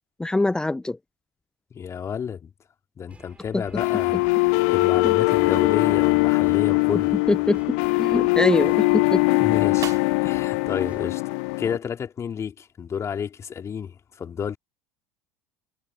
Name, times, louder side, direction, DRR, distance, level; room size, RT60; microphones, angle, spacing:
voice 1, 0.2-1.0 3.5-3.6 5.0-5.1 7.3-9.2, left 2 dB, 10° left, 0.6 m, -23 dB
voice 2, 1.7-2.5 3.0-4.2 4.7-7.2 9.4-9.9 10.2-11.2 11.6-14.6, left 7 dB, 30° left, 3.5 m, -30 dB
sound 1, 3.1-11.2, right 3 dB, 15° right, 6.4 m, -50 dB
sound 2, 3.8-11.8, left 32 dB, 60° left, 0.6 m, -21 dB
sound 3, 7.2-12.1, right 10 dB, 40° right, 4.1 m, -45 dB
figure-of-eight pair, 70°, 9 cm